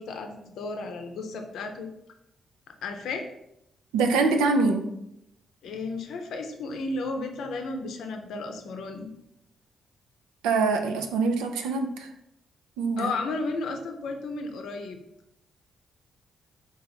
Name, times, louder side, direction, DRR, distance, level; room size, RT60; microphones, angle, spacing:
voice 1, 0.0-1.9 2.8-3.2 5.6-9.1 13.0-15.0, left 3 dB, 70° left, 4 dB, 0.6 m, -33 dB
voice 2, 3.9-4.9 10.4-12.1 12.8-13.1, right 4 dB, 80° right, 5 dB, 0.4 m, -24 dB
4.2 x 2.4 x 4.0 m, 0.81 s
hypercardioid pair, 40°, 0 cm